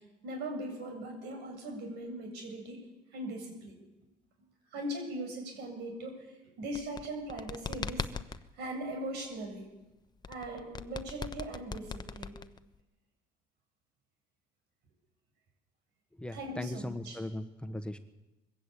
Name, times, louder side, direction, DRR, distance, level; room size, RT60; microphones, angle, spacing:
voice 1, 0.2-2.8 3.1-3.8 4.7-8.1 8.6-9.7 10.3-12.4 16.3-17.2, right 1 dB, 80° right, 3 dB, 7.6 m, -40 dB
sound 1, 6.6-8.4 10.2-12.8, left 5 dB, 25° left, 1.0 m, -39 dB
voice 2, 16.2-18.0, left 1 dB, 5° left, 8 dB, 1.4 m, -38 dB
22.0 x 16.0 x 8.6 m, 1.0 s
cardioid pair, 110°, 17 cm